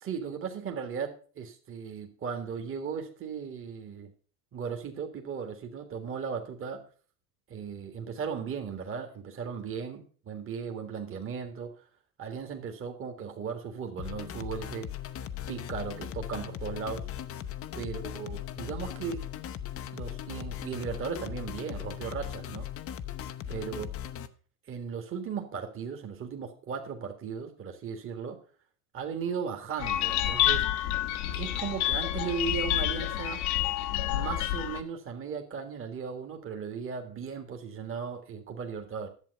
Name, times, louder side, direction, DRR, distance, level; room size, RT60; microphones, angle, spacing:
voice 1, 0.0-4.1 4.5-6.8 7.5-11.7 12.2-14.9 15.5-17.1 17.7-19.2 19.9-22.7 23.5-23.9 24.7-28.4 28.9-30.7 31.3-33.4 34.1-39.1, right 6 dB, 25° right, 4 dB, 1.8 m, -36 dB
sound 1, 14.0-24.3, left 10 dB, 30° left, 0.7 m, -38 dB
sound 2, 29.8-34.8, left 13 dB, 70° left, 1.2 m, -28 dB
11.0 x 7.5 x 5.4 m, 0.41 s
hypercardioid pair, 105°, 46 cm